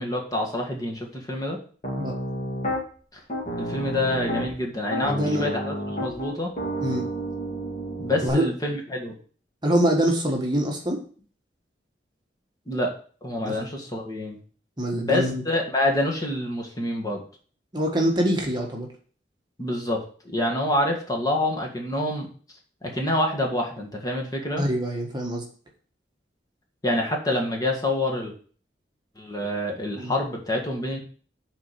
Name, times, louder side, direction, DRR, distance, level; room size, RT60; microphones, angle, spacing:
voice 1, 0.0-1.6 3.6-6.5 8.0-9.1 12.7-12.9 13.2-14.4 14.9-17.2 19.6-22.3 22.8-24.6 26.8-28.3 29.2-31.0, left 1 dB, 20° left, 0 dB, 1.7 m, -27 dB
Piano, 1.8-2.8 3.3-4.5 4.9-8.3, equal, 45° left, 2.1 m, -30 dB
voice 2, 5.0-5.6 6.8-7.1 8.2-8.5 9.6-11.0 13.4-13.6 14.8-15.4 17.7-18.9 24.6-25.4 30.0-30.1, right 1 dB, 25° right, 0 dB, 1.5 m, -24 dB
7.1 x 4.3 x 6.9 m, 0.43 s
head